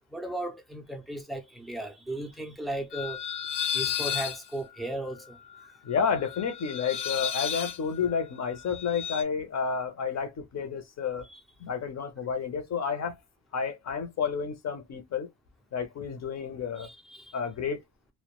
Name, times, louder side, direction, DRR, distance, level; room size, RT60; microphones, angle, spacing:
voice 1, 0.1-3.2 3.7-5.7 11.3-11.4 16.8-17.4, right 1 dB, ahead, 0.3 m, -36 dB
sound 1, 2.9-9.2, left 9 dB, 90° left, 0.6 m, -34 dB
voice 2, 5.8-11.3 11.6-13.2 13.5-15.3 15.7-16.9 17.3-17.8, left 6 dB, 45° left, 0.6 m, -30 dB
2.1 x 2.1 x 2.9 m
wide cardioid pair, 170°, 39 cm